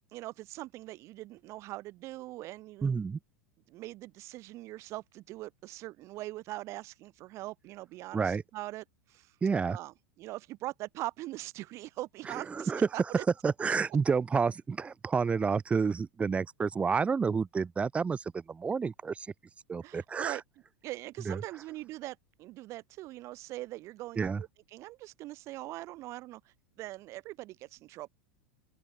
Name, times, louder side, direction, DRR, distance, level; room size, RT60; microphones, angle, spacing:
voice 1, 0.1-3.0 3.7-9.3 9.7-13.0 19.8-20.4 20.8-28.1, right 17 dB, 45° right, 1.1 m, -42 dB
voice 2, 2.8-3.2 8.1-8.4 9.4-9.8 12.4-12.9 13.1-19.3 19.7-20.4 21.3-21.4 24.2-24.4, right 5 dB, 20° right, 0.7 m, -29 dB
open air
hypercardioid pair, 90°, 7 cm